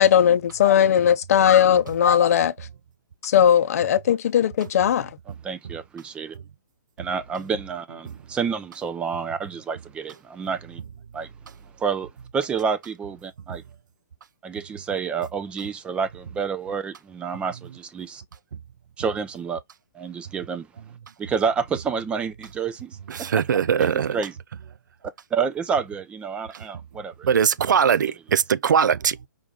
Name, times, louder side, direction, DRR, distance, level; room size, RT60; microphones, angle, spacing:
voice 1, 0.0-2.5 3.2-5.1, left 9 dB, 55° left, 0.6 m, -18 dB
voice 2, 5.4-6.4 7.0-10.8 11.1-11.3 11.8-13.6 14.4-18.2 19.0-19.6 19.9-20.7 21.2-23.3 23.8-24.3 25.0-27.3, right 6 dB, 10° right, 0.4 m, -29 dB
voice 3, 23.1-24.2 27.2-29.3, right 7 dB, 80° right, 0.4 m, -21 dB
5.1 x 2.3 x 3.5 m
hypercardioid pair, 145°, 10 cm